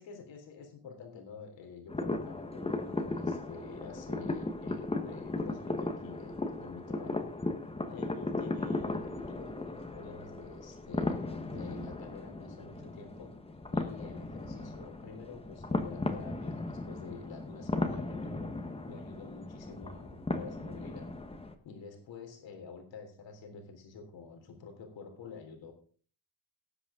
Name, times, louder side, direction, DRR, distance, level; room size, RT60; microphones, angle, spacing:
voice 1, 0.0-7.3 7.7-13.3 13.7-18.5 18.9-21.1 21.6-25.7, left 5 dB, 75° left, 4 dB, 3.4 m, -48 dB
sound 1, 1.9-21.5, left 2 dB, 15° left, 1.2 m, -36 dB
18.5 x 8.1 x 3.7 m, 0.43 s
cardioid pair, 155°, 45 cm